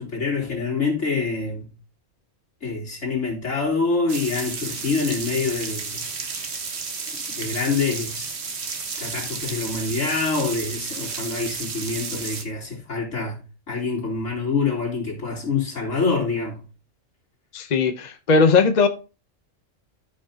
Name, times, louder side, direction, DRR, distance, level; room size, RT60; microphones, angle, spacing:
voice 1, 0.0-1.7 2.6-6.1 7.4-8.3 9.0-16.6, left 4 dB, 75° left, 3.7 m, -26 dB
sound 1, 4.1-12.4, right 5 dB, 55° right, 1.4 m, -32 dB
voice 2, 17.5-18.9, left 4 dB, 40° left, 0.8 m, -18 dB
14.0 x 5.6 x 2.8 m
omnidirectional pair, 1.3 m